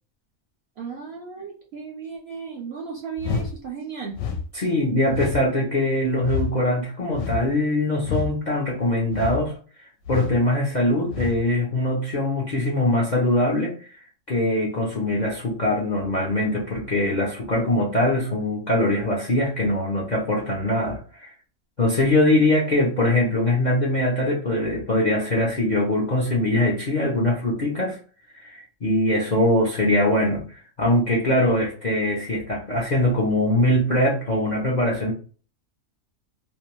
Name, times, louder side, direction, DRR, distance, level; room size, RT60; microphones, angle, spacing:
voice 1, 0.8-4.2, right 6 dB, 65° right, 1 dB, 0.6 m, -35 dB
sound 1, 3.2-3.5 4.1-4.4 5.1-5.4 6.2-6.5 7.1-7.5 8.0-8.3 9.1-9.4 10.0-10.4 11.1-11.4, left 6 dB, 70° left, 0.9 m, -27 dB
voice 2, 4.5-9.5 10.1-14.0 14.3-21.3 21.8-28.0 28.3-35.1, left 1 dB, 55° left, -3 dB, 0.5 m, -22 dB
2.5 x 2.2 x 3.0 m, 0.40 s
omnidirectional pair, 1.5 m